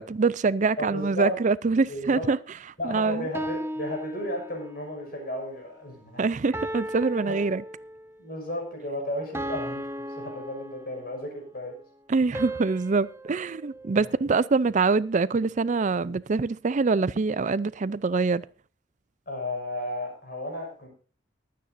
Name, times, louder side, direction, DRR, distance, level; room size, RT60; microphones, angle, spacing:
voice 1, 0.0-2.4 2.8-3.2 6.2-7.6 12.1-18.4, right 4 dB, 40° right, 0.4 m, -24 dB
voice 2, 0.8-1.4 1.9-2.3 2.8-6.2 7.2-7.4 8.2-11.8 14.0-14.1 19.3-20.9, left 1 dB, 50° left, 6.0 m, -34 dB
sound 1, 3.3-4.9 6.5-8.2 9.3-11.3 12.3-14.7, right 1 dB, 10° right, 0.7 m, -36 dB
22.5 x 9.4 x 2.6 m
head